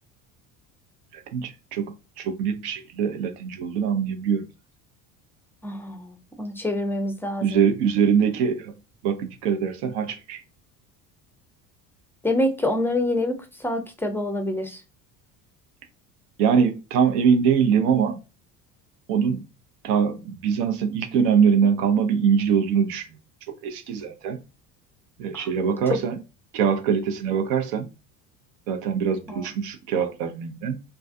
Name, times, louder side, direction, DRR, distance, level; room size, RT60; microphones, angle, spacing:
voice 1, 1.3-4.5 7.4-8.7 9.0-10.4 16.4-18.2 19.1-19.4 19.8-23.1 23.6-24.4 25.2-26.2 26.5-27.9 28.7-30.8, right 7 dB, 85° right, 0.7 m, -23 dB
voice 2, 5.6-7.6 12.2-14.8 25.3-25.7 29.3-29.4, left 1 dB, 5° left, 0.3 m, -27 dB
2.3 x 2.3 x 2.5 m
hypercardioid pair, 80°, 46 cm